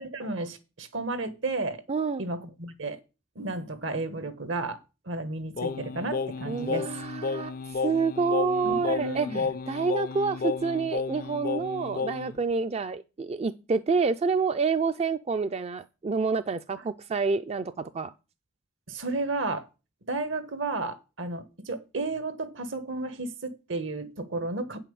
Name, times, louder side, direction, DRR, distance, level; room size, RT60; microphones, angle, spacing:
voice 1, 0.0-1.8 2.2-3.0 3.3-4.8 5.0-6.9 8.6-9.5 18.9-19.7 20.1-24.8, right 2 dB, 75° right, 1.3 m, -33 dB
voice 2, 1.9-2.2 6.5-7.5 7.8-18.1, right 4 dB, 35° right, 0.4 m, -28 dB
Singing, 5.6-12.4, left 4 dB, 50° left, 0.4 m, -32 dB
8.6 x 5.8 x 7.0 m
head